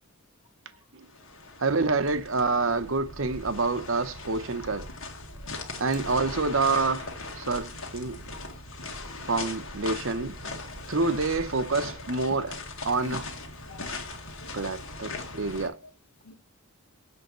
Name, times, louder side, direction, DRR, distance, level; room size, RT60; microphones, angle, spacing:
sound 1, 1.1-15.7, left 3 dB, 65° left, 2.0 m, -39 dB
voice 1, 1.6-4.9 5.8-7.1 7.4-8.2 9.3-10.4 10.9-12.6 12.9-13.3 14.5-15.8, right 3 dB, 60° right, 0.9 m, -27 dB
voice 2, 5.3-5.8 7.5-7.6 8.9-9.2 12.8-13.1 13.6-14.0 14.4-14.5 15.2-15.3 16.2-16.3, left 4 dB, 90° left, 1.5 m, -47 dB
8.0 x 5.6 x 3.1 m
head